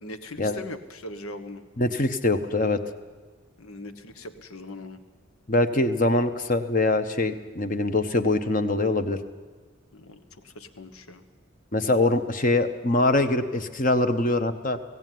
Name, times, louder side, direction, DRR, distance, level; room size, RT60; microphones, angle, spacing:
voice 1, 0.0-1.6 3.6-5.0 9.9-11.2, left 2 dB, 90° left, 10 dB, 1.3 m, -40 dB
voice 2, 1.8-2.8 5.5-9.2 11.7-14.8, left 2 dB, 40° left, 9 dB, 1.0 m, -23 dB
17.5 x 16.5 x 9.3 m, 1.4 s
head